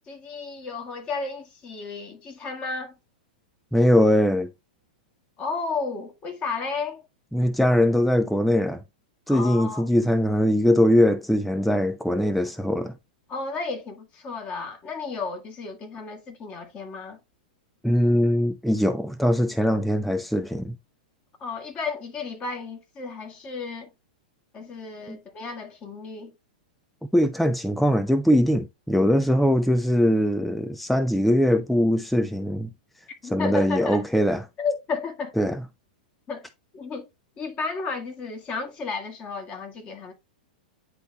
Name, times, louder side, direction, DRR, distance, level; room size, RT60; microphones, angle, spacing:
voice 1, 0.1-3.0 5.4-7.0 9.3-9.8 13.3-17.2 21.4-23.9 24.5-26.3 33.2-34.1 34.6-35.4 36.3-36.5 36.7-37.1 37.4-40.1, left 4 dB, 30° left, 1.7 m, -33 dB
voice 2, 3.7-4.5 7.3-8.8 9.3-12.9 17.8-20.8 25.1-25.2 27.1-32.7 33.3-34.4 35.4-35.6, equal, ahead, 0.4 m, -21 dB
9.7 x 3.4 x 2.9 m
hypercardioid pair, 115°, 5 cm